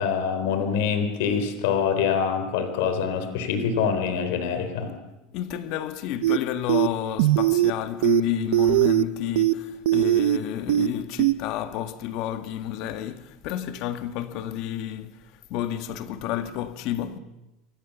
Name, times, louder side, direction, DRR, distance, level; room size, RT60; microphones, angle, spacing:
voice 1, 0.0-4.9, left 6 dB, 80° left, 4.0 m, -25 dB
voice 2, 5.3-17.2, left 11 dB, 50° left, 1.7 m, -30 dB
sound 1, 6.2-6.4 6.7-6.9 7.2-7.7 8.0-8.2 8.5-9.0 9.4-9.5 9.9-10.4 10.7-10.9 11.2-11.3, right 15 dB, 85° right, 0.9 m, -20 dB
27.5 x 24.0 x 7.2 m
cardioid pair, 165°, 0 cm